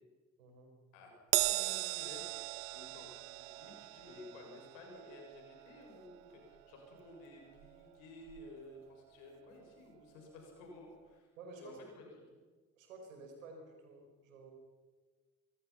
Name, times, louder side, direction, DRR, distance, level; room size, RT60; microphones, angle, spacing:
voice 1, 0.4-0.7 11.4-11.8 12.8-14.5, right 3 dB, 90° right, 4 dB, 5.1 m, -52 dB
Crash cymbal, 1.3-8.0 8.3-8.5 9.6-9.7, right 22 dB, 70° right, 0.8 m, -39 dB
voice 2, 1.5-2.4 2.7-11.3 11.6-12.4, left 2 dB, 80° left, 1 dB, 7.0 m, -54 dB
26.0 x 23.0 x 5.8 m, 1.4 s
hypercardioid pair, 45°, 38 cm